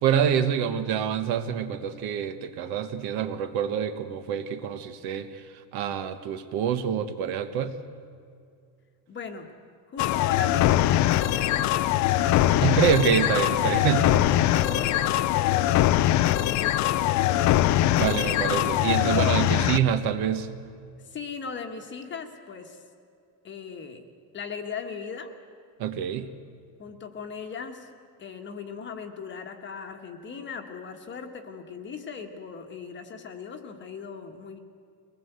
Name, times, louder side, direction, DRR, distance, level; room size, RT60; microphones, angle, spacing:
voice 1, 0.0-5.3 5.7-7.7 12.6-14.0 18.0-20.5 25.8-26.3, right 8 dB, 55° right, 10 dB, 1.3 m, -26 dB
voice 2, 9.1-9.5 9.9-12.7 13.5-17.6 18.1-18.4 18.9-19.6 21.0-22.8 23.4-24.1 24.3-25.3 26.8-27.9 28.2-34.6, left 5 dB, 25° left, 5 dB, 1.3 m, -38 dB
sound 1, 10.0-19.8, left 13 dB, 40° left, 0.5 m, -22 dB
23.0 x 19.5 x 8.1 m, 2.4 s
cardioid pair, 175°, 46 cm